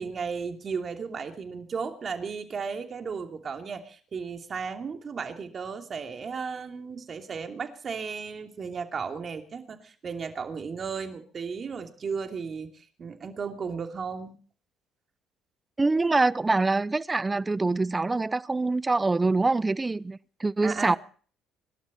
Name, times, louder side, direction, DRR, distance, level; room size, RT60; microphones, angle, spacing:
voice 1, 0.0-14.3 20.6-21.0, right 5 dB, 45° right, 2.8 m, -35 dB
voice 2, 15.8-21.0, right 3 dB, 20° right, 0.7 m, -25 dB
24.5 x 12.0 x 4.3 m
supercardioid pair, 70°, 0 cm